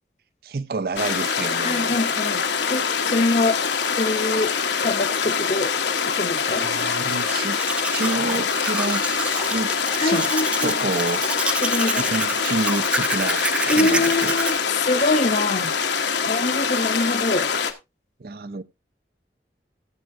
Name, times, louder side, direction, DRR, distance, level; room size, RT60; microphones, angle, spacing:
voice 1, 0.4-2.0 6.5-7.6 7.9-9.7 10.0-10.3 10.6-11.5 12.0-14.4 18.2-18.6, right 3 dB, 55° right, 0.5 m, -29 dB
sound 1, 1.0-17.7, left 6 dB, 85° left, 1.3 m, -24 dB
voice 2, 1.6-2.4 2.7-3.6 4.0-4.6 4.8-5.7 6.2-6.7 10.0-10.7 11.6-12.1 13.7-14.5 14.8-15.7 16.3-17.5, left 2 dB, 40° left, 0.7 m, -24 dB
Domestic sounds home sounds, 6.9-14.6, right 2 dB, 5° right, 0.4 m, -28 dB
15.0 x 7.4 x 2.6 m
head